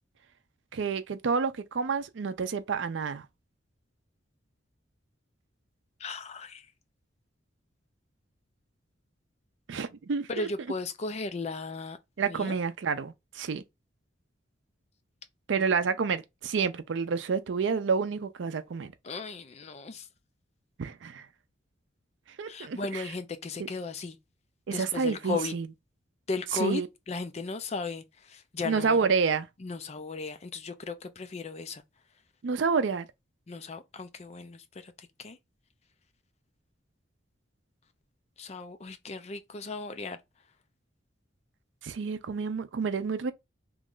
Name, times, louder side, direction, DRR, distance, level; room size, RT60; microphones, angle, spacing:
voice 1, 0.7-3.3 9.7-10.5 12.2-13.6 15.5-18.9 20.8-21.3 22.4-23.1 24.7-25.7 26.5-26.9 28.6-29.5 32.4-33.1 41.8-43.3, right 5 dB, 75° right, 0.4 m, -29 dB
voice 2, 6.0-6.6 10.3-12.0 12.3-12.6 19.0-20.0 22.5-24.2 24.7-25.5 26.3-26.8 27.1-28.0 28.3-29.0 29.6-31.8 33.5-34.9 35.2-35.4 38.4-40.2, left 3 dB, 35° left, 0.4 m, -36 dB
3.1 x 2.5 x 3.6 m
head